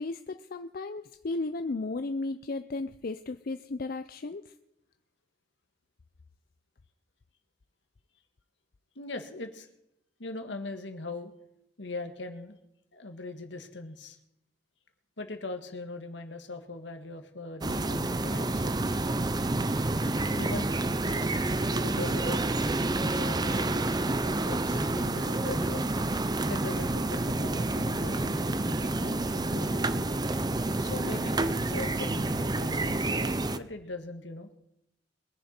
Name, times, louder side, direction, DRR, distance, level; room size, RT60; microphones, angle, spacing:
voice 1, 0.0-4.5, left 3 dB, 55° left, 9 dB, 0.5 m, -34 dB
voice 2, 8.9-9.7 10.2-11.3 11.8-12.6 12.9-14.2 15.2-18.8 20.4-20.7 21.8-22.6 22.9-23.9 24.4-25.9 26.5-29.9 30.8-34.5, left 2 dB, 75° left, 7 dB, 1.7 m, -40 dB
sound 1, 17.6-33.6, right 2 dB, 25° right, 0.6 m, -29 dB
22.0 x 10.5 x 4.4 m, 0.83 s
head